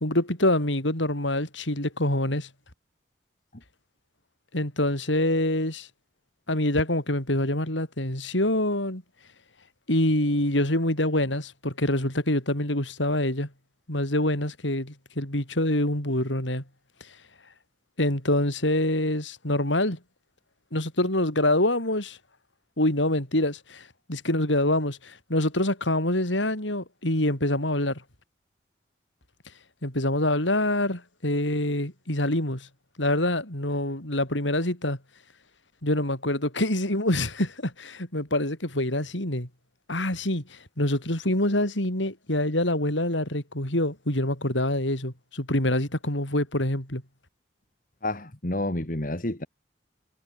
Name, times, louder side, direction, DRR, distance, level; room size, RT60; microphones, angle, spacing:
voice 1, 0.0-2.5 4.5-5.9 6.5-9.0 9.9-13.5 13.9-16.6 18.0-20.0 20.7-22.2 22.8-28.0 29.8-32.7 33.0-35.0 35.8-39.5 39.9-47.0, left 1 dB, 80° left, 6.3 m, -26 dB
voice 2, 48.0-49.5, left 1 dB, 45° left, 2.2 m, -29 dB
head